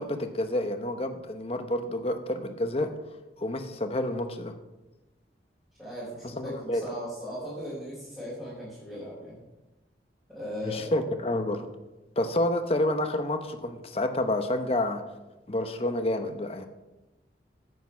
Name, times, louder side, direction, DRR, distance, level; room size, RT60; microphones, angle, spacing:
voice 1, 0.0-2.9 3.4-4.5 6.4-6.8 10.6-11.7 12.2-15.0 15.5-16.7, left 1 dB, 35° left, 7 dB, 0.8 m, -29 dB
voice 2, 5.8-9.4 10.3-11.0, equal, 5° right, -12 dB, 4.2 m, -38 dB
9.1 x 8.4 x 5.6 m, 1.0 s
head